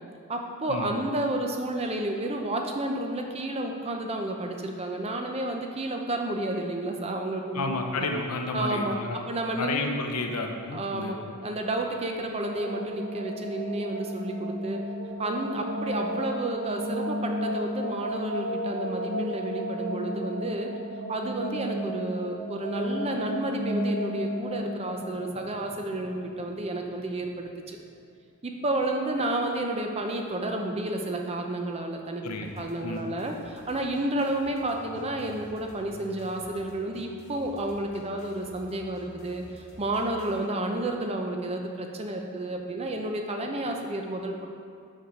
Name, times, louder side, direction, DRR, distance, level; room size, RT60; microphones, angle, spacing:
voice 1, 0.3-8.1 8.5-9.0 9.3-9.9 10.7-11.2 11.4-14.8 15.2-20.7 21.1-27.8 28.4-32.2 32.6-44.5, right 1 dB, 25° right, 3 dB, 0.6 m, -31 dB
voice 2, 7.5-9.2 9.6-11.1 32.2-32.5 32.8-33.0, left 3 dB, 90° left, 3 dB, 0.8 m, -31 dB
sound 1, 12.1-26.9, equal, 65° right, 0.8 m, -33 dB
sound 2, 32.4-40.4, equal, 70° left, 1.4 m, -50 dB
6.3 x 5.5 x 5.0 m, 2.2 s
head